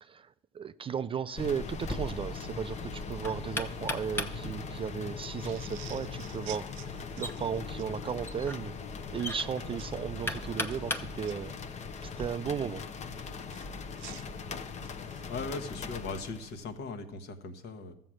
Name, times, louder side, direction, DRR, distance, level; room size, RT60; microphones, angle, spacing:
voice 1, 0.0-8.7 9.1-11.5 12.0-12.9, right 7 dB, 25° right, 0.4 m, -35 dB
sound 1, 1.4-16.7, left 5 dB, 35° left, 0.8 m, -40 dB
Knock, 1.7-12.3, left 1 dB, 10° left, 1.0 m, -40 dB
sound 2, 5.4-7.9 9.8-10.0 10.6-11.3 13.5-15.4, right 14 dB, 70° right, 0.6 m, -49 dB
voice 2, 15.3-17.9, left 4 dB, 60° left, 1.3 m, -39 dB
13.5 x 7.5 x 6.3 m
supercardioid pair, 95°, 20 cm